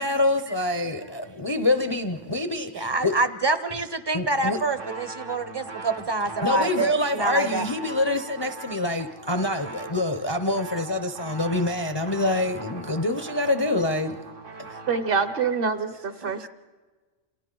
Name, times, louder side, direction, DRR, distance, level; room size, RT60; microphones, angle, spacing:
voice 1, 0.0-3.2 4.1-4.6 6.4-14.2, left 2 dB, 30° left, 0.5 m, -26 dB
voice 2, 2.7-7.7 16.2-16.5, right 3 dB, 25° right, 0.6 m, -27 dB
sound 1, 4.4-15.5, right 3 dB, 80° right, 1.9 m, -40 dB
voice 3, 14.9-16.5, right 5 dB, 50° right, 1.0 m, -26 dB
28.5 x 28.0 x 3.9 m
omnidirectional pair, 1.3 m